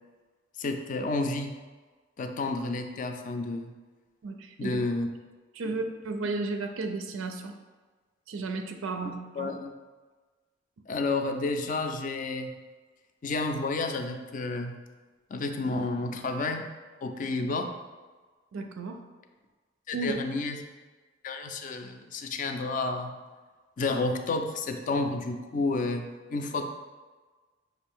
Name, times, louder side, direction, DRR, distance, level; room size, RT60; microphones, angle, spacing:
voice 1, 0.6-1.5 2.2-3.7 4.6-5.1 5.6-5.8 9.0-9.1 9.4-9.7 10.9-12.5 13.2-14.8 15.3-16.7 17.0-17.7 19.9-20.6 21.2-23.1 23.8-26.6, left 3 dB, 40° left, 6 dB, 0.4 m, -30 dB
voice 2, 4.2-4.8 5.5-7.5 8.3-9.5 18.5-19.0 19.9-20.2, right 3 dB, 80° right, 5 dB, 0.4 m, -33 dB
6.1 x 2.5 x 3.5 m, 1.3 s
head